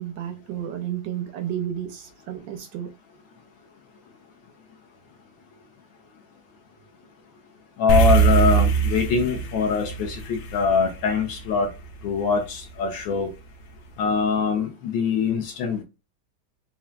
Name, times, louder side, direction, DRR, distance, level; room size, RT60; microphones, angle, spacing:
voice 1, 0.0-2.9, right 10 dB, 75° right, 1.0 m, -32 dB
voice 2, 7.8-11.7 12.0-13.3 14.0-15.8, left 5 dB, 70° left, 1.3 m, -23 dB
sound 1, 7.9-12.4, right 6 dB, 90° left, 1.7 m, -22 dB
5.5 x 2.3 x 2.3 m
omnidirectional pair, 2.4 m